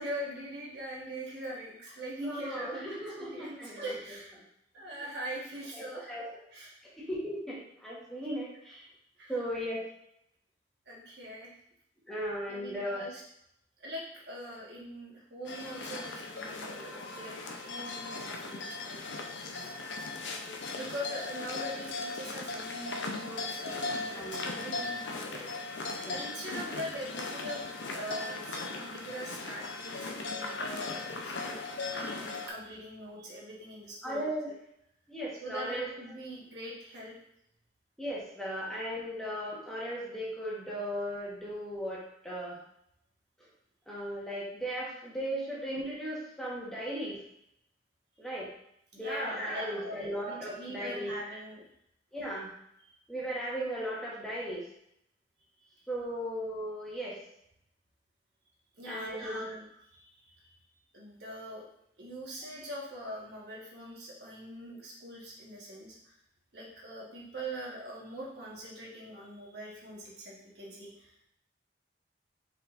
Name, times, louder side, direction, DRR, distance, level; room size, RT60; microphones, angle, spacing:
voice 1, 0.0-4.3 4.7-6.1 6.5-6.8 9.2-9.4 10.9-11.5 12.5-13.2 13.8-17.4 17.6-19.3 20.7-25.7 26.0-27.6 27.9-31.6 31.9-34.5 35.4-37.1 49.0-51.6 52.8-52.9 55.6-55.7 58.8-60.5 60.9-61.6 62.0-66.1 66.5-71.3, equal, 60° right, -4 dB, 1.3 m, -42 dB
voice 2, 2.2-3.8 5.7-6.3 7.0-8.8 9.3-9.8 12.1-13.0 24.1-24.4 26.0-26.2 34.0-34.5 35.1-35.9 38.0-42.6 43.9-47.2 48.2-48.5 48.9-51.1 52.1-52.5 53.1-54.6 55.9-57.1 58.9-59.5, equal, 5° left, -6 dB, 1.1 m, -36 dB
sound 1, 15.4-32.5, left 3 dB, 75° left, 0.6 m, -38 dB
5.6 x 3.8 x 2.5 m, 0.75 s
head